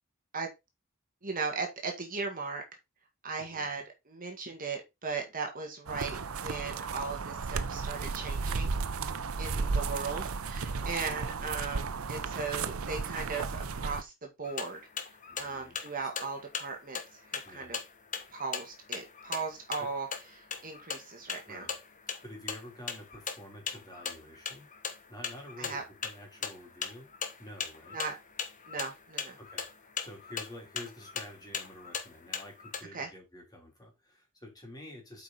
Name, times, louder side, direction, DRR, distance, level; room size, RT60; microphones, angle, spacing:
voice 1, 1.2-2.6 3.2-8.7 9.4-14.8 15.4-17.8 18.3-20.1 20.3-21.7 25.6-25.8 27.9-28.2 28.7-29.4 32.9-33.1, right 4 dB, 40° right, 2 dB, 1.9 m, -37 dB
voice 2, 3.4-3.8 9.5-9.7 10.8-11.6 15.3-16.3 17.4-17.7 19.8-19.9 21.5-21.7 22.2-24.7 25.1-27.1 27.4-28.0 29.4-35.2, left 1 dB, 20° left, 0 dB, 3.4 m, -49 dB
sound 1, 5.9-14.0, right 4 dB, 90° right, 0.7 m, -34 dB
sound 2, 14.4-32.8, left 6 dB, 40° left, 1.3 m, -40 dB
8.2 x 5.1 x 4.2 m, 0.22 s
head